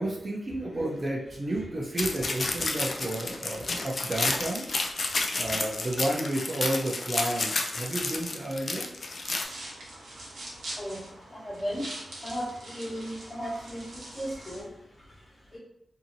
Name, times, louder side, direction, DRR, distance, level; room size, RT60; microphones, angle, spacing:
voice 1, 0.0-4.7 5.4-8.9, right 1 dB, 35° right, -2 dB, 0.6 m, -31 dB
sound 1, 2.0-9.4, left 3 dB, 45° left, 0.4 m, -31 dB
voice 2, 3.4-4.4 4.7-5.7 7.7-7.9 8.6-15.6, equal, 30° left, -5 dB, 1.1 m, -40 dB
sound 2, 9.2-14.6, right 1 dB, 90° right, 0.8 m, -43 dB
2.7 x 2.7 x 2.7 m, 0.77 s
wide cardioid pair, 95°, 0 cm